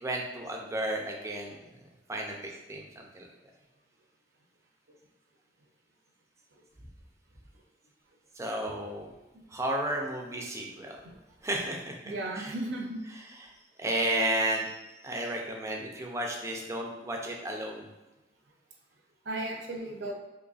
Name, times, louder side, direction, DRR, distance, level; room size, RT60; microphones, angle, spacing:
voice 1, 0.0-1.7 2.1-2.9 3.1-3.3 8.4-9.1 9.5-11.0 11.4-12.5 13.0-13.5 13.8-17.9, right 1 dB, 15° right, 0 dB, 0.4 m, -33 dB
voice 2, 12.0-13.0 19.2-20.1, right 2 dB, 70° right, 0 dB, 0.6 m, -35 dB
3.9 x 3.0 x 2.4 m, 1.0 s
head